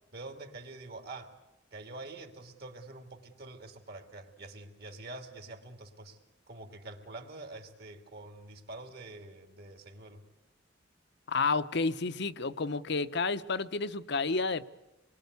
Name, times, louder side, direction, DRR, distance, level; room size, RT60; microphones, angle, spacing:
voice 1, 0.1-1.3 1.7-6.2 6.5-10.2, right 2 dB, 55° right, 5 dB, 2.8 m, -46 dB
voice 2, 11.3-14.6, left 4 dB, 60° left, 13 dB, 0.8 m, -30 dB
26.0 x 22.0 x 8.3 m, 1.0 s
head